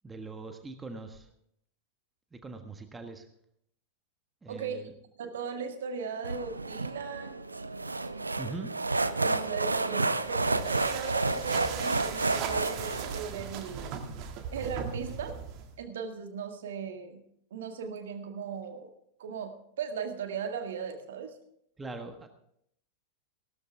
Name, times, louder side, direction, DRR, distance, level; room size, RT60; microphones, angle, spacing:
voice 1, 0.0-1.3 2.3-3.2 4.4-4.9 8.4-8.7 21.8-22.3, right 3 dB, 10° right, 6 dB, 1.4 m, -41 dB
voice 2, 4.5-4.8 5.2-7.4 9.2-14.0 14.5-15.4 15.8-17.2 17.5-18.9 19.2-21.3, right 6 dB, 60° right, 6 dB, 1.8 m, -38 dB
sound 1, 6.2-13.2, right 3 dB, 80° right, 0.6 m, -30 dB
sound 2, 10.2-15.8, right 7 dB, 40° right, 1.8 m, -39 dB
16.5 x 13.0 x 3.5 m, 0.71 s
figure-of-eight pair, 90°, 0 cm